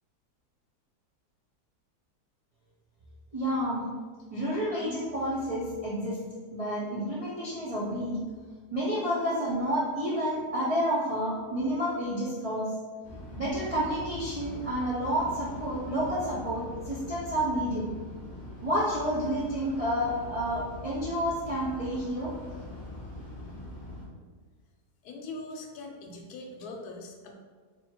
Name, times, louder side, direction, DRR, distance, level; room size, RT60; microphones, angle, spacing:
voice 1, 3.3-3.8 4.3-6.2 6.5-8.2 8.7-12.7 13.4-17.9 18.6-22.3, equal, 45° right, -8 dB, 0.4 m, -30 dB
sound 1, 13.0-24.1, left 1 dB, 15° left, 1.0 m, -42 dB
voice 2, 25.0-27.3, left 2 dB, 75° left, 2 dB, 1.1 m, -41 dB
3.1 x 2.7 x 4.3 m, 1.5 s
omnidirectional pair, 1.7 m